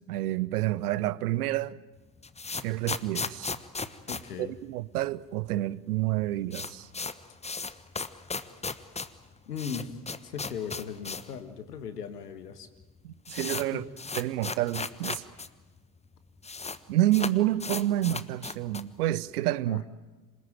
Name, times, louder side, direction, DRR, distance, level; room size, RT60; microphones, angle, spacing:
voice 1, 0.1-1.8 2.6-3.5 4.4-6.9 13.0-13.8 14.1-15.2 16.9-19.8, right 15 dB, 70° right, 0.9 m, -28 dB
sound 1, 2.0-5.2 5.5-5.6 5.8-5.9 6.2-11.4 11.7-11.8 12.5-12.6 12.8-15.5 15.8-15.9 16.0-16.8 17.1-19.0, left 4 dB, 15° left, 1.2 m, -36 dB
voice 2, 4.1-4.5 9.5-12.7 13.7-13.8 19.7-19.8, left 7 dB, 80° left, 1.7 m, -38 dB
27.5 x 19.0 x 9.2 m
figure-of-eight pair, 60°, 47 cm